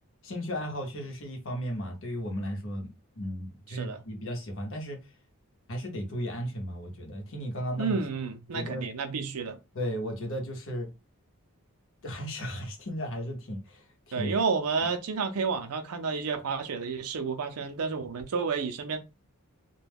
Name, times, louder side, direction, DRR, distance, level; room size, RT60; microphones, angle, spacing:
voice 1, 0.2-5.0 5.7-8.0 8.5-8.8 9.7-10.9 12.0-14.4, equal, 60° left, 0.8 m, -35 dB
voice 2, 3.7-4.0 7.8-9.6 14.1-19.0, right 5 dB, 80° right, 0.5 m, -30 dB
2.2 x 2.2 x 3.4 m
head